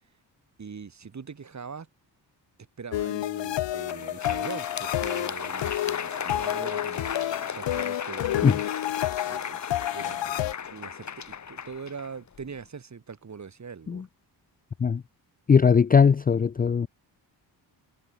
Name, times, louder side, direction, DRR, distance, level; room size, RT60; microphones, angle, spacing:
voice 1, 0.6-1.9 2.8-8.6 9.2-9.6 9.9-14.1, right 5 dB, 40° right, 3.2 m, -42 dB
sound 1, 2.9-10.5, left 13 dB, 80° left, 1.2 m, -30 dB
Crowd, 3.6-12.6, left 7 dB, 40° left, 1.5 m, -36 dB
voice 2, 15.5-16.9, left 6 dB, 20° left, 0.4 m, -19 dB
cardioid pair, 90°, 44 cm